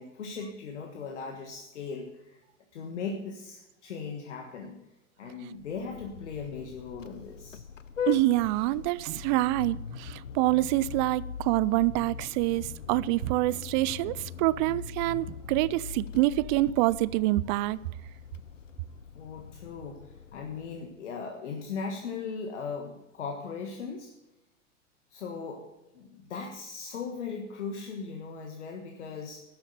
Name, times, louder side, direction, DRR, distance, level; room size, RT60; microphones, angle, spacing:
voice 1, 0.0-2.4 2.7-4.8 5.2-7.6 19.1-24.1 25.1-25.7 25.9-29.4, left 5 dB, 70° left, 1.5 m, -38 dB
Vehicle horn car horn honking, 5.6-21.0, left 7 dB, 90° left, 0.6 m, -41 dB
voice 2, 8.1-17.8, right 17 dB, 40° right, 0.4 m, -26 dB
12.0 x 7.8 x 6.8 m
figure-of-eight pair, 90°, 37 cm